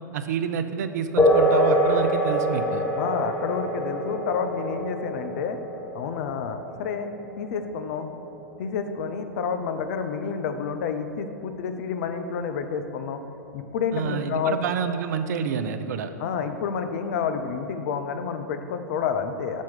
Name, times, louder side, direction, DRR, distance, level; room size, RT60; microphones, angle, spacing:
voice 1, 0.1-2.9 13.9-16.1, right 7 dB, 60° right, 10 dB, 0.5 m, -28 dB
sound 1, 1.2-9.2, equal, 20° left, 0.9 m, -25 dB
voice 2, 3.0-5.6 5.9-7.1 7.4-8.1 8.6-13.2 13.5-14.6 16.2-19.6, left 6 dB, 55° left, 8 dB, 0.5 m, -29 dB
6.2 x 4.4 x 5.6 m, 2.7 s
figure-of-eight pair, 100°, 10 cm